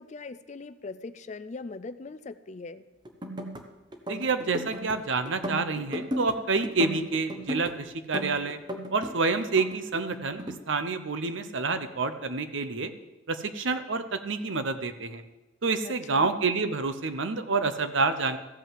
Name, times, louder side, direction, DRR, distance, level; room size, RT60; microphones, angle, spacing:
voice 1, 0.0-2.9 15.8-16.4, left 3 dB, 35° left, 13 dB, 0.4 m, -40 dB
sound 1, 3.0-3.6 3.9-5.0 5.2-6.4 6.6-7.7 8.1-9.1 9.4-10.5, equal, 20° right, 0.9 m, -35 dB
voice 2, 4.1-8.6 8.9-12.9 13.3-15.2 15.6-18.4, right 4 dB, 70° right, 10 dB, 0.8 m, -28 dB
14.5 x 5.6 x 7.5 m, 1.1 s
head